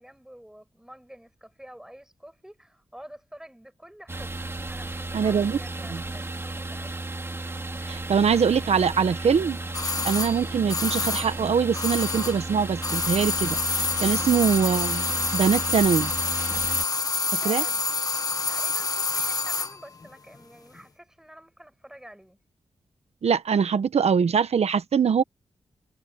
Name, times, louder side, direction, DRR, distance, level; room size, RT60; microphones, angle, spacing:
voice 1, 0.0-7.1 14.0-14.3 17.0-17.9 18.5-22.4, equal, 5° right, 7.9 m, -48 dB
sound 1, 4.1-16.9, right 2 dB, 20° right, 2.8 m, -34 dB
voice 2, 5.1-5.6 7.9-9.6 10.0-16.1 17.4-17.6 23.2-25.2, right 6 dB, 65° right, 1.1 m, -23 dB
sound 2, 9.7-12.5 12.8-19.8 20.0-20.1, left 4 dB, 35° left, 1.1 m, -27 dB
wide cardioid pair, 170°, 11 cm